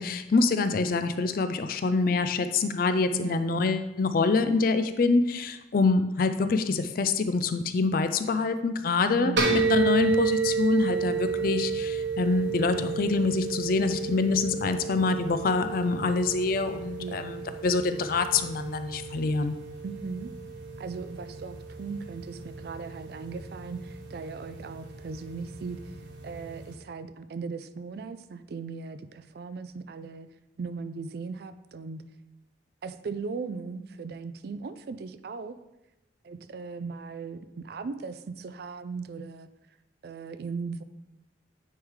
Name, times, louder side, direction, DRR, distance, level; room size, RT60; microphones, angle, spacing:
voice 1, 0.0-19.5, left 3 dB, 50° left, 10 dB, 0.4 m, -26 dB
voice 2, 3.1-3.6 9.0-9.5 17.0-17.5 19.8-20.3 20.8-26.0 26.2-30.3 30.6-32.0 32.8-35.6 36.2-39.5 40.0-40.8, right 4 dB, 60° right, 12 dB, 0.3 m, -38 dB
sound 1, 9.4-26.7, right 5 dB, 80° right, 1.1 m, -32 dB
9.3 x 3.7 x 3.1 m, 0.95 s
head